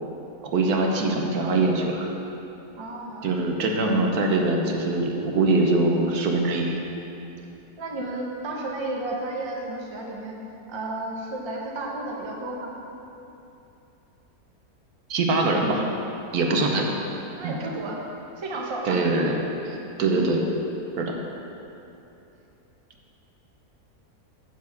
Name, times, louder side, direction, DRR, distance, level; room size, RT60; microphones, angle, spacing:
voice 1, 0.4-2.1 3.2-6.8 15.1-15.8 16.3-16.9 17.4-17.6 18.8-19.4 19.6-20.4 21.0-21.2, right 2 dB, 75° right, 1 dB, 1.4 m, -23 dB
voice 2, 2.8-3.3 7.8-10.4 10.7-12.7 16.5-16.8 17.4-18.0 18.4-19.0 20.1-20.4, right 2 dB, 25° right, -1 dB, 0.8 m, -32 dB
9.4 x 4.7 x 7.1 m, 2.9 s
omnidirectional pair, 1.6 m